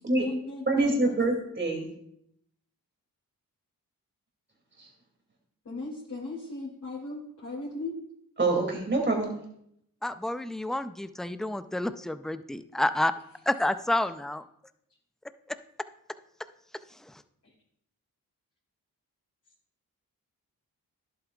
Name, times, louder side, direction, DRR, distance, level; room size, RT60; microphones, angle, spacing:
voice 1, 0.1-1.2 5.6-8.0, left 2 dB, 45° left, -6 dB, 2.8 m, -38 dB
voice 2, 0.7-1.9 8.4-9.3, right 2 dB, 30° right, 1 dB, 2.6 m, -25 dB
voice 3, 10.0-13.1 13.5-14.5 15.5-15.6 17.0-17.2, left 1 dB, ahead, 12 dB, 0.4 m, -29 dB
11.0 x 8.1 x 2.4 m, 0.71 s
cardioid pair, 65°, 36 cm